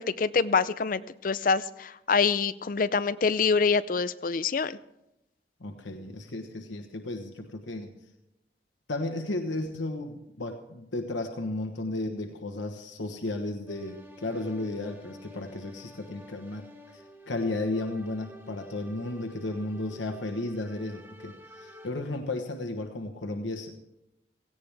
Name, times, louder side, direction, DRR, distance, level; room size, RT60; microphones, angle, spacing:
voice 1, 0.0-4.8, left 5 dB, 45° left, 15 dB, 0.5 m, -26 dB
voice 2, 5.6-7.9 8.9-23.7, left 2 dB, 90° left, 5 dB, 1.2 m, -34 dB
sound 1, 13.7-21.9, left 1 dB, 10° right, 1.2 m, -50 dB
17.5 x 16.0 x 3.4 m, 0.90 s
head